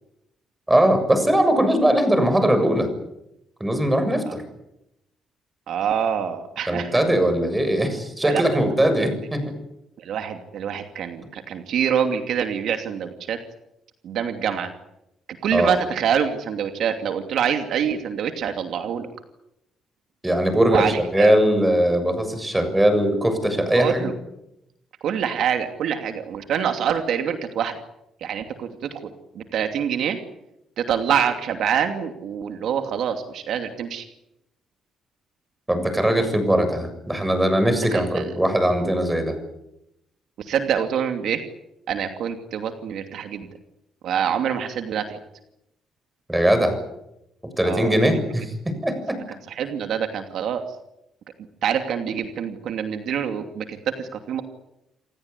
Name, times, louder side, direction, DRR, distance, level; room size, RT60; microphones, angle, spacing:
voice 1, 0.7-2.9 3.6-4.4 6.7-9.5 15.5-15.7 20.2-20.9 21.1-24.1 35.7-39.3 46.3-46.8 47.6-49.2, right 1 dB, 10° right, 8 dB, 7.1 m, -20 dB
voice 2, 5.7-7.0 8.2-8.6 10.0-13.4 14.0-14.7 15.4-19.1 20.5-21.4 23.7-24.1 25.0-27.8 28.2-30.2 30.8-34.1 37.9-38.2 40.4-41.4 41.9-43.5 44.0-45.2 47.6-48.3 49.5-50.6 51.6-54.4, right 8 dB, 75° right, 6 dB, 2.7 m, -26 dB
28.5 x 17.5 x 9.9 m, 0.87 s
cardioid pair, 90°, 0 cm